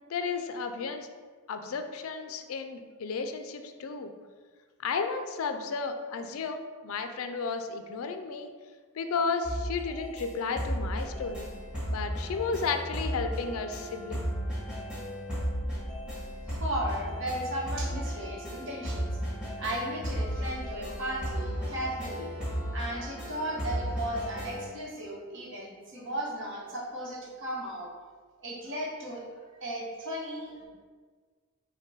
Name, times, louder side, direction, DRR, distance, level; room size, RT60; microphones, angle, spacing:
voice 1, 0.1-1.1 1.5-4.1 4.8-8.5 9.0-11.5 11.9-14.3, left 5 dB, 65° left, 7 dB, 0.4 m, -33 dB
sound 1, 9.4-24.7, equal, 5° right, 1.3 m, -35 dB
voice 2, 16.5-19.1 19.6-22.3 22.7-27.9 28.4-29.2 29.5-30.7, right 1 dB, 55° right, -3 dB, 1.1 m, -35 dB
5.9 x 2.2 x 4.0 m, 1.5 s
head